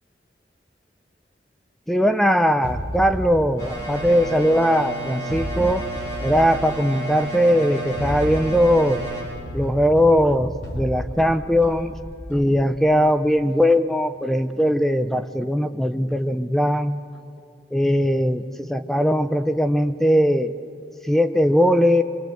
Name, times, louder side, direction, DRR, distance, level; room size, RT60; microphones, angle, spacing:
voice 1, 1.9-5.9 6.2-9.0 9.5-12.0 12.3-17.0 17.7-20.5 21.0-22.0, equal, ahead, 9 dB, 0.5 m, -20 dB
sound 1, 2.6-4.8 5.3-7.1 7.8-12.9, equal, 75° left, 4.3 m, -33 dB
sound 2, 3.6-9.2, right 1 dB, 20° left, 7.1 m, -32 dB
25.0 x 22.0 x 7.9 m, 2.6 s
head